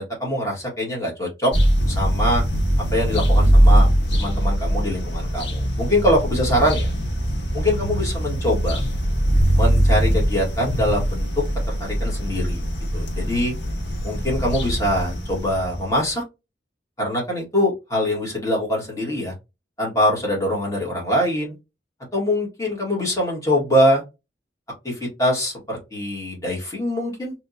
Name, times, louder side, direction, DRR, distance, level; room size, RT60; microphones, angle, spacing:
voice 1, 0.0-1.5 1.9-2.4 2.9-3.9 4.1-6.9 7.5-8.8 9.5-11.3 11.7-12.6 12.9-13.5 14.0-16.2 17.0-19.3 19.8-21.5 22.1-24.0 24.8-27.3, equal, 20° left, 1.6 m, -23 dB
sound 1, 1.5-16.1, equal, 65° left, 1.2 m, -21 dB
3.4 x 3.0 x 2.6 m
head